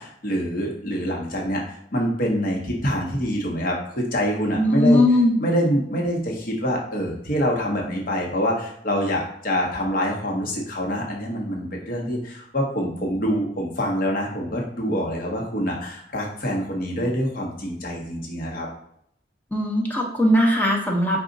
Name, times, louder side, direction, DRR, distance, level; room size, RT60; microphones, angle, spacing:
voice 1, 0.0-5.0 5.4-18.7, equal, 55° left, -1 dB, 1.0 m, -25 dB
voice 2, 4.5-5.4 19.5-21.2, left 1 dB, 10° left, -1 dB, 0.6 m, -19 dB
4.9 x 2.4 x 3.9 m, 0.69 s
head